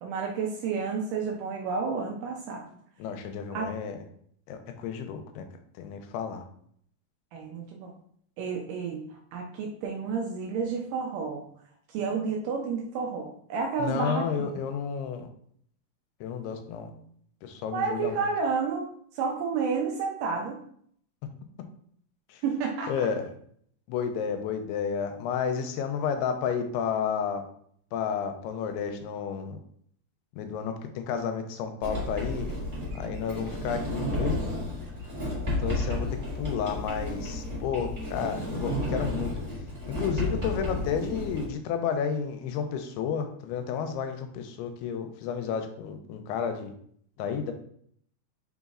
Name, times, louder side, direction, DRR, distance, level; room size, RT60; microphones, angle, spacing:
voice 1, 0.0-2.7 3.5-3.7 7.3-7.9 8.4-11.4 11.9-14.6 17.7-18.9 19.1-20.6 22.4-22.9, right 5 dB, 85° right, 0 dB, 1.9 m, -30 dB
voice 2, 3.0-4.0 4.5-5.5 5.8-6.4 13.8-15.3 16.2-16.9 17.4-18.3 22.3-22.4 22.9-23.3 23.9-27.4 27.9-29.6 30.4-32.5 32.9-34.4 35.6-36.1 36.4-39.3 39.9-46.7 47.2-47.5, left 7 dB, 85° left, 6 dB, 2.6 m, -31 dB
Sliding door, 31.8-41.4, left 1 dB, 25° right, 1.1 m, -32 dB
5.6 x 4.0 x 2.4 m, 0.65 s
omnidirectional pair, 4.5 m